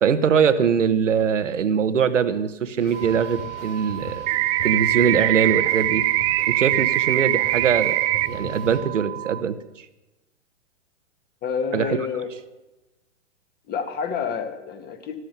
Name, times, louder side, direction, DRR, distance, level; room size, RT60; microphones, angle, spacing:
voice 1, 0.0-4.2 4.6-6.0 6.5-9.5 11.7-12.0, right 7 dB, 90° right, 13 dB, 1.3 m, -22 dB
sound 1, 2.8-8.8, left 2 dB, 75° left, 5.7 m, -40 dB
sound 2, 2.9-9.4, right 15 dB, 65° right, 0.7 m, -36 dB
sound 3, 4.3-8.3, right 17 dB, 30° right, 0.5 m, -22 dB
voice 2, 11.4-12.3 13.7-15.2, left 6 dB, 25° left, 7 dB, 1.9 m, -28 dB
14.0 x 13.0 x 6.8 m, 1.0 s
hypercardioid pair, 130°, 36 cm